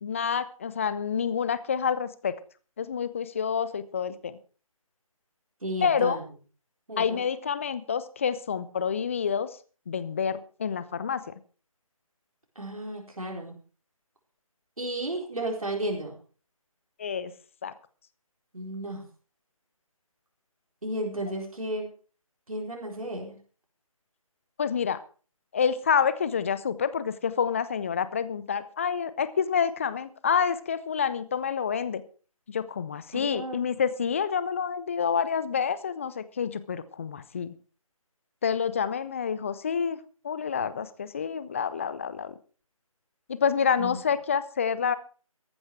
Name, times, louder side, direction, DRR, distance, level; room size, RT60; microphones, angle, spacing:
voice 1, 0.0-2.3 2.8-4.4 5.8-6.2 7.0-9.6 9.9-11.2 17.0-17.3 17.6-17.7 24.6-25.0 25.5-32.0 32.5-37.5 38.4-40.0 40.2-42.3 43.3-44.9, left 7 dB, 25° left, 15 dB, 0.6 m, -28 dB
voice 2, 5.6-6.2 6.9-7.2 12.6-13.6 14.8-16.2 18.5-19.0 20.8-21.9 22.5-23.4 33.1-33.6 43.8-44.0, right 1 dB, 75° right, 1 dB, 4.3 m, -33 dB
14.5 x 11.5 x 4.7 m, 0.38 s
figure-of-eight pair, 155°, 18 cm